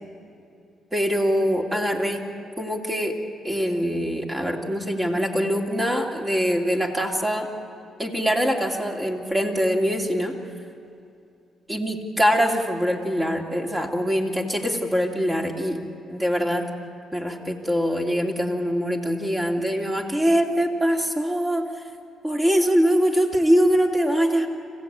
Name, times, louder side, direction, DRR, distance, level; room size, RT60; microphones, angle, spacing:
voice 1, 0.9-2.2 2.6-3.1 3.4-7.5 8.0-10.4 11.7-15.8 16.1-16.7 17.1-21.6 22.2-24.5, equal, 15° right, 1 dB, 2.9 m, -23 dB
25.5 x 16.0 x 8.9 m, 2.5 s
cardioid pair, 90°, 0 cm